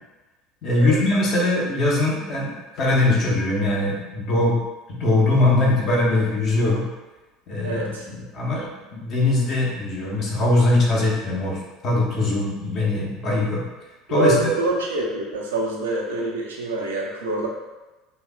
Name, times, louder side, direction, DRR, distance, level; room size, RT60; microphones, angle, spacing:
voice 1, 0.6-4.6 4.9-6.9 7.5-13.6 14.1-14.5, left 2 dB, 45° left, -3 dB, 1.0 m, -21 dB
voice 2, 7.6-8.1 14.1-17.5, right 2 dB, 70° right, -2 dB, 0.5 m, -26 dB
4.3 x 2.7 x 2.3 m, 1.1 s
figure-of-eight pair, 65°, 0 cm